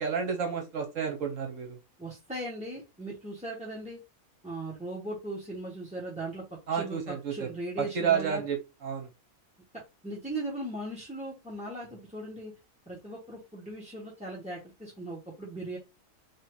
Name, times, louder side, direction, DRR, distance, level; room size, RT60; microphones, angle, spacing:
voice 1, 0.0-1.8 6.7-7.5 7.8-8.6 8.8-9.1, right 7 dB, 65° right, 1.3 m, -30 dB
voice 2, 2.0-4.0 4.4-6.4 6.7-8.4 10.0-12.5 12.9-15.8, right 1 dB, 5° right, 1.0 m, -38 dB
3.4 x 2.6 x 4.5 m
omnidirectional pair, 1.5 m